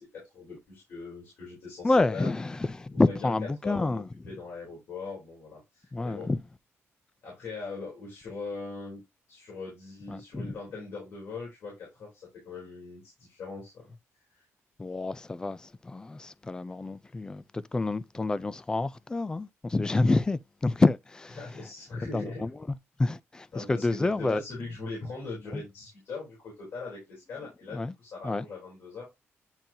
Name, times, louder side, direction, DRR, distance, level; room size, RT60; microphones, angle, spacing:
voice 1, 0.1-2.3 2.9-6.4 7.2-9.0 9.3-14.0 14.4-14.5 21.4-22.5 23.5-29.1, left 3 dB, 60° left, 3.5 m, -41 dB
voice 2, 1.8-4.0 5.9-6.4 10.1-10.5 14.8-21.4 22.1-22.5 23.0-24.4 25.5-25.6 27.7-27.9 28.2-28.5, left 2 dB, 15° left, 0.3 m, -28 dB
8.9 x 3.8 x 2.8 m
cardioid pair, 155°, 5 cm